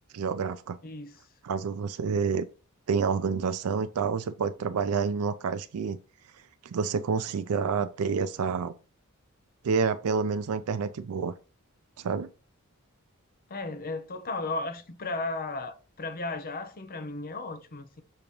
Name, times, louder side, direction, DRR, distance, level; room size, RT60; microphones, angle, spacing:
voice 1, 0.1-0.8 1.4-2.5 2.9-6.0 6.6-8.7 9.6-11.3 12.0-12.3, right 5 dB, 75° right, 0.4 m, -28 dB
voice 2, 0.8-1.1 13.5-18.0, left 3 dB, 40° left, 0.7 m, -35 dB
6.5 x 2.9 x 5.2 m
head